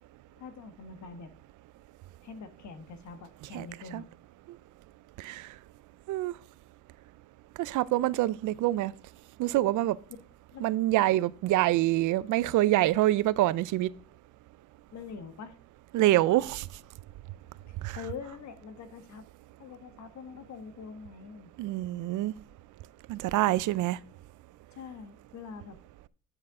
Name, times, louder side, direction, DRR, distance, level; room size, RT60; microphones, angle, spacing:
voice 1, 0.4-1.3 2.2-4.1 10.5-11.0 14.9-15.6 17.7-19.3 19.6-21.5 24.7-25.8, left 5 dB, 65° left, 1.3 m, -44 dB
voice 2, 5.2-5.5 6.1-6.3 7.6-8.9 9.4-10.0 10.6-13.9 15.9-16.6 17.8-18.0 21.6-22.3 23.1-24.0, right 15 dB, 80° right, 0.5 m, -26 dB
9.8 x 6.5 x 3.7 m
cardioid pair, 90°, 30 cm